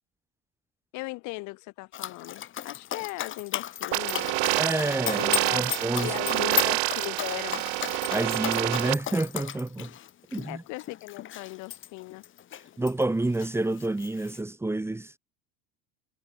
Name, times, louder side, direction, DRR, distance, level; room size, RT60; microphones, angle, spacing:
voice 1, 0.9-4.4 5.2-5.7 6.0-7.6 10.5-12.2, left 23 dB, 60° left, 4.9 m, -38 dB
Dog, 1.9-13.0 13.3-14.4, left 11 dB, 35° left, 2.3 m, -35 dB
sound 1, 3.9-8.9, right 35 dB, 70° right, 2.4 m, -27 dB
voice 2, 4.6-6.1 6.5-6.7 8.1-9.9 10.3-10.6 12.8-15.1, right 2 dB, 5° right, 2.1 m, -29 dB
supercardioid pair, 115°, 33 cm